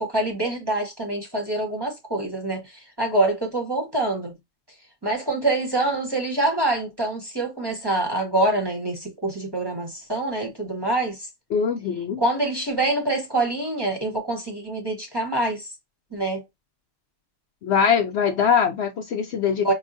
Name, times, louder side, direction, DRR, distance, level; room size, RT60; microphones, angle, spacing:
voice 1, 0.0-4.3 5.0-11.2 12.2-15.7 16.1-16.4 19.6-19.7, right 2 dB, 20° right, 0.9 m, -25 dB
voice 2, 11.5-12.2 17.6-19.7, left 7 dB, 65° left, 0.8 m, -22 dB
4.8 x 2.3 x 2.6 m
omnidirectional pair, 1.4 m